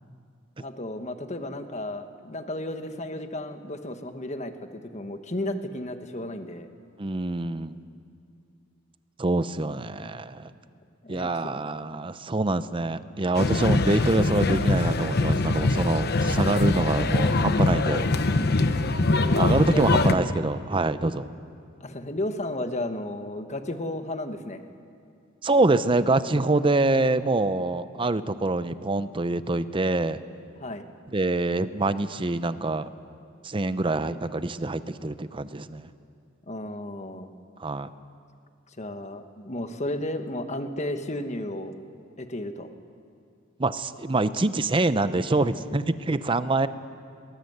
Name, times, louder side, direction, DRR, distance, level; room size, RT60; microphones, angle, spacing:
voice 1, 0.6-6.7 10.0-10.1 11.0-11.5 16.7-16.9 19.4-20.2 21.8-24.6 30.6-30.8 36.5-37.3 38.8-41.7 42.2-42.7, left 1 dB, 35° left, 8 dB, 1.3 m, -33 dB
voice 2, 7.0-7.8 9.2-10.5 11.1-18.1 18.5-18.6 19.3-21.3 25.4-30.2 31.1-32.9 33.4-35.9 37.6-37.9 43.6-46.7, right 2 dB, 25° right, 13 dB, 0.7 m, -25 dB
sound 1, 13.3-20.1, left 2 dB, 55° left, 0.9 m, -23 dB
21.5 x 19.0 x 8.0 m, 2.4 s
head